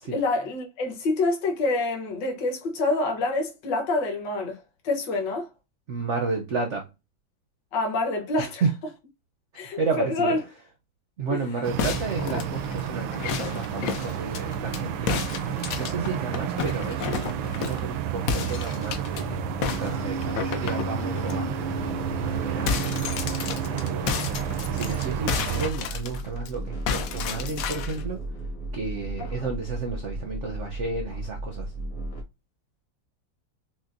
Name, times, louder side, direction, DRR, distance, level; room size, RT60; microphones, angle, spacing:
voice 1, 0.1-4.6 4.8-5.5 7.7-8.6 9.6-10.4 11.3-11.4 20.2-20.4 29.2-29.5, left 2 dB, 65° left, 1.6 m, -27 dB
voice 2, 5.9-6.9 8.6-8.7 9.5-10.4 11.2-15.2 15.8-23.2 23.6-24.2 24.7-28.2 28.7-31.7, right 4 dB, 70° right, 0.7 m, -32 dB
sound 1, 11.6-25.7, right 8 dB, 90° right, 1.4 m, -31 dB
sound 2, 11.8-14.8 15.1-17.9 18.3-19.2 19.6-21.4 21.8-21.9 22.2-26.5 26.9-28.0, left 7 dB, 80° left, 0.7 m, -31 dB
sound 3, 16.9-32.2, right 2 dB, 35° left, 0.5 m, -36 dB
6.0 x 2.0 x 2.5 m
omnidirectional pair, 2.1 m